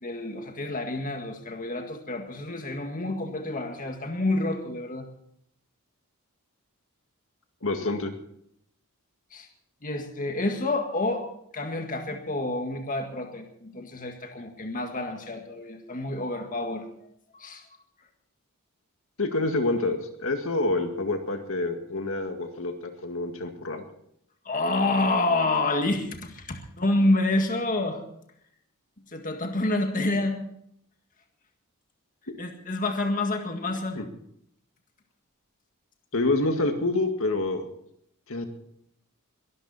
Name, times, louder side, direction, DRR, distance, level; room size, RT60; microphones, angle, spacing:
voice 1, 0.0-5.1 9.3-9.5 9.8-11.3 11.5-16.9 17.3-17.6 24.5-28.0 29.1-30.4 32.4-34.0, left 2 dB, 35° left, 4 dB, 1.9 m, -28 dB
voice 2, 7.6-8.1 19.2-23.8 34.0-34.1 36.1-37.7 38.3-38.5, left 2 dB, 65° left, 5 dB, 2.0 m, -27 dB
22.5 x 13.0 x 4.3 m, 0.71 s
head